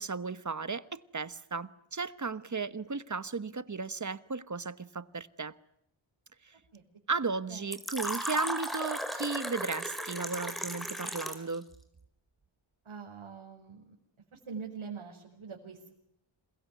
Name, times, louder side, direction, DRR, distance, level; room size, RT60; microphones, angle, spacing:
voice 1, 0.0-5.5 7.1-11.7, right 4 dB, 35° right, 1.2 m, -35 dB
Fill (with liquid), 7.7-11.5, equal, ahead, 4.4 m, -36 dB
voice 2, 12.8-13.9 14.3-15.9, right 5 dB, 75° right, 5.2 m, -44 dB
28.0 x 22.5 x 9.3 m
wide cardioid pair, 100°, 49 cm